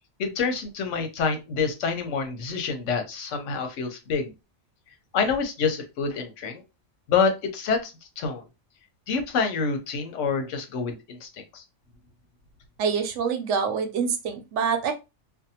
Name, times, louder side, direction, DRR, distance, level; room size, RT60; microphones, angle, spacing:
voice 1, 0.2-4.3 5.1-6.6 7.1-8.4 9.1-11.3 11.5-11.6, left 5 dB, 80° left, 6 dB, 1.0 m, -27 dB
voice 2, 12.8-14.9, right 6 dB, 80° right, 6 dB, 0.9 m, -26 dB
2.6 x 2.1 x 2.7 m, 0.25 s
omnidirectional pair, 1.2 m